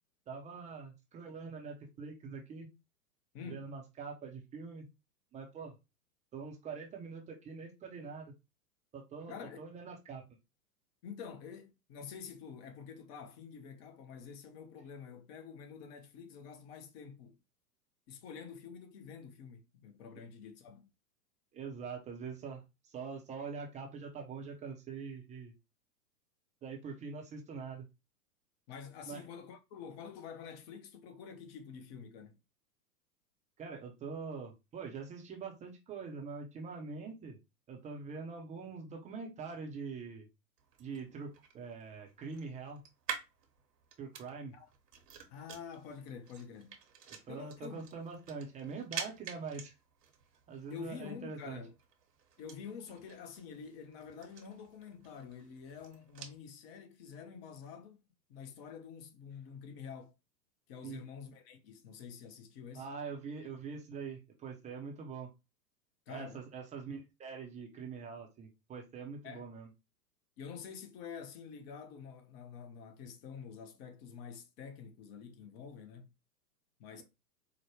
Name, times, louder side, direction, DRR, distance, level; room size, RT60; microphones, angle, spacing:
voice 1, 0.3-2.7 3.4-4.9 5.3-5.7 6.3-8.3 8.9-10.2 21.5-25.5 26.6-27.9 29.1-29.2 33.6-37.4 37.7-40.3 40.8-42.8 44.0-44.6 47.3-49.7 50.5-51.6 60.8-61.0 62.7-65.3 66.1-69.7, right 5 dB, 15° right, 0.6 m, -44 dB
voice 2, 3.3-3.7 9.3-9.6 11.0-17.4 18.1-20.9 28.7-32.4 44.5-44.7 45.3-46.8 47.3-47.8 50.7-51.7 52.4-58.0 58.3-60.1 60.7-62.9 66.1-66.4 69.2-69.5 70.4-76.1 76.8-77.0, left 6 dB, 40° left, 0.8 m, -48 dB
sound 1, 40.6-56.4, right 7 dB, 70° right, 1.3 m, -49 dB
4.8 x 2.1 x 3.0 m
hypercardioid pair, 110°, 50 cm